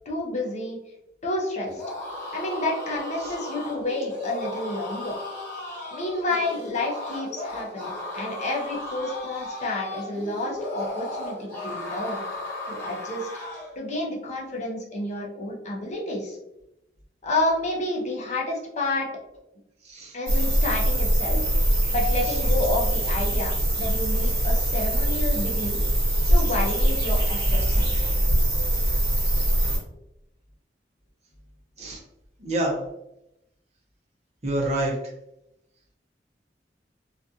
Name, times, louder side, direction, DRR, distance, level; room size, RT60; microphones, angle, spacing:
voice 1, 0.1-0.8 1.2-1.8 2.3-5.2 5.9-12.2 12.7-13.3 13.8-16.4 17.2-19.1 20.1-21.5 21.9-25.8 26.3-28.2, left 2 dB, 40° left, -2 dB, 0.6 m, -30 dB
sound 1, 1.7-13.8, left 1 dB, 10° left, 1.2 m, -35 dB
sound 2, 20.3-29.8, right 1 dB, 65° right, 0.9 m, -23 dB
voice 2, 27.6-28.0 31.8-32.0 32.4-32.8 34.4-34.9, right 1 dB, 40° right, -3 dB, 0.7 m, -26 dB
2.4 x 2.3 x 2.6 m, 0.87 s
head